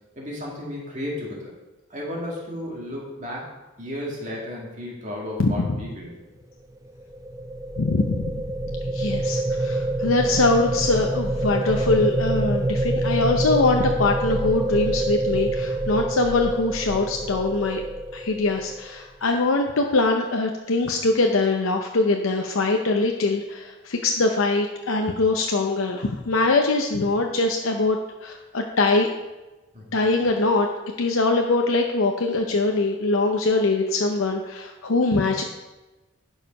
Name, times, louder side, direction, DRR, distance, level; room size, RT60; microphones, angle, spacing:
voice 1, 0.2-1.5 1.9-3.5 3.8-6.1 29.7-30.0, left 1 dB, 35° right, -3 dB, 2.2 m, -33 dB
sound 1, 6.9-19.0, right 1 dB, 15° right, 0.4 m, -26 dB
voice 2, 7.8-8.4 8.9-17.8 18.1-29.1 29.9-30.7 31.0-35.4, left 3 dB, 85° left, 3 dB, 0.7 m, -22 dB
11.0 x 4.9 x 5.4 m, 1.1 s
head